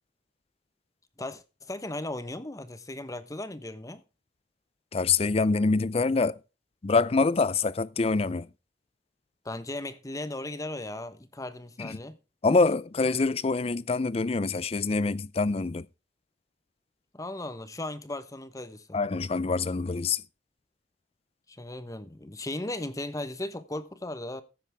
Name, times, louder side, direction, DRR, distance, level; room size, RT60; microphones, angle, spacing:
voice 1, 1.2-4.0 9.4-12.2 17.1-19.0 21.5-24.4, left 1 dB, 20° left, 1.0 m, -37 dB
voice 2, 4.9-6.4 6.8-8.5 11.8-12.0 12.4-15.9 18.9-20.2, left 3 dB, 35° left, 0.5 m, -25 dB
15.5 x 8.7 x 3.5 m
head